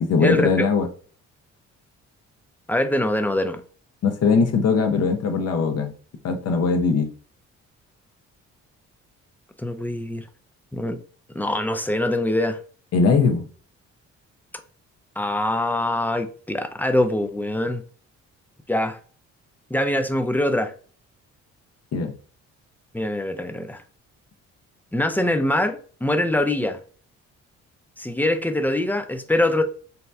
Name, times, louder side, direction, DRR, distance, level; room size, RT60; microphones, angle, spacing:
voice 1, 0.0-0.9 4.0-5.9 6.2-7.1 12.9-13.5 21.9-22.1, left 5 dB, 55° left, 0.7 m, -20 dB
voice 2, 2.7-3.6 9.6-10.3 10.7-11.0 11.3-12.6 15.2-17.8 18.7-19.0 19.7-20.7 22.9-23.8 24.9-26.8 28.0-29.6, left 1 dB, 5° left, 0.3 m, -23 dB
2.8 x 2.1 x 3.3 m
cardioid pair, 90°, 30 cm